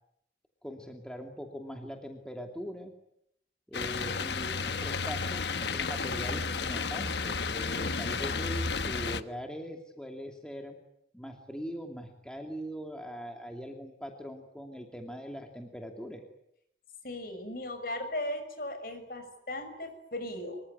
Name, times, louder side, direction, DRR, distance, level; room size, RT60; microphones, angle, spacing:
voice 1, 0.6-2.9 3.7-10.8 11.1-16.2, equal, 5° left, 3 dB, 2.7 m, -41 dB
sound 1, 3.7-9.2, left 4 dB, 75° left, 1.3 m, -32 dB
voice 2, 17.0-20.6, left 1 dB, 55° left, 8 dB, 6.4 m, -37 dB
25.5 x 24.0 x 9.6 m, 0.76 s
head